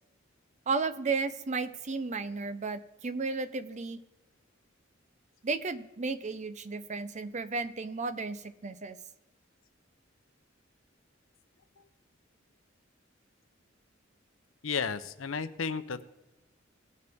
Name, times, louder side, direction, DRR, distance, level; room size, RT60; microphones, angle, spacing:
voice 1, 0.7-4.0 5.4-9.0, right 4 dB, 35° right, 12 dB, 0.6 m, -33 dB
voice 2, 14.6-16.0, left 5 dB, 85° left, 12 dB, 0.7 m, -33 dB
19.0 x 6.7 x 3.5 m, 1.0 s
head